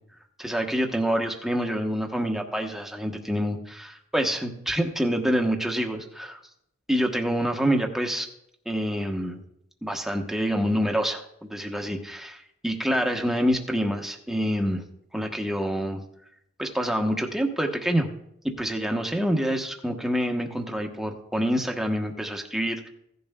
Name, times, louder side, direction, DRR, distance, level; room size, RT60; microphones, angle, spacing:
voice 1, 0.4-6.4 6.9-8.3 8.7-9.4 9.8-14.8 15.1-16.0 16.6-18.1 18.6-22.9, equal, ahead, 2 dB, 1.0 m, -27 dB
16.0 x 10.5 x 2.2 m, 0.77 s
head